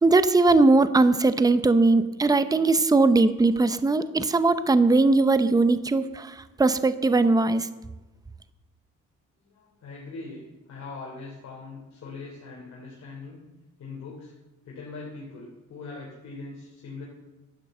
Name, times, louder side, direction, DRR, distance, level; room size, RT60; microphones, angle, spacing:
voice 1, 0.0-7.7, right 3 dB, 10° right, 12 dB, 0.7 m, -20 dB
voice 2, 9.4-13.4 13.8-14.3 14.6-17.1, left 3 dB, 60° left, -3 dB, 3.2 m, -41 dB
11.5 x 10.5 x 7.7 m, 1.1 s
cardioid pair, 120°, 30 cm